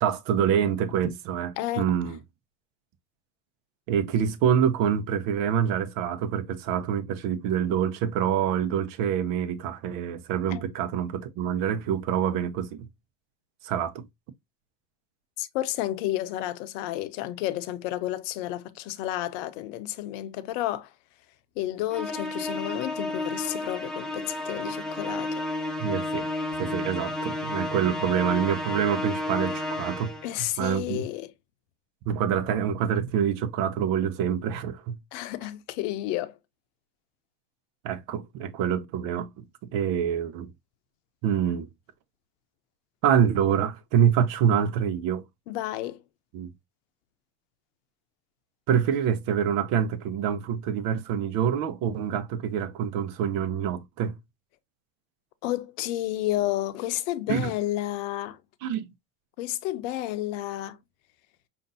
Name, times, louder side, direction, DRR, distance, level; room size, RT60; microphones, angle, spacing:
voice 1, 0.0-2.2 3.9-12.9 13.6-14.0 25.8-26.3 26.6-30.1 30.4-31.1 32.1-35.0 37.8-39.4 39.7-40.5 41.2-41.7 43.0-45.2 46.3-46.5 48.7-54.2 57.3-57.5 58.6-58.9, right 8 dB, 65° right, 0.8 m, -26 dB
voice 2, 15.4-20.9 21.6-25.4 30.2-31.3 35.1-36.4 45.5-46.0 55.4-58.4 59.4-60.8, left 14 dB, 75° left, 0.6 m, -31 dB
Musical instrument, 21.9-30.4, left 2 dB, ahead, 0.8 m, -32 dB
5.2 x 2.6 x 2.6 m
supercardioid pair, 95°, 37 cm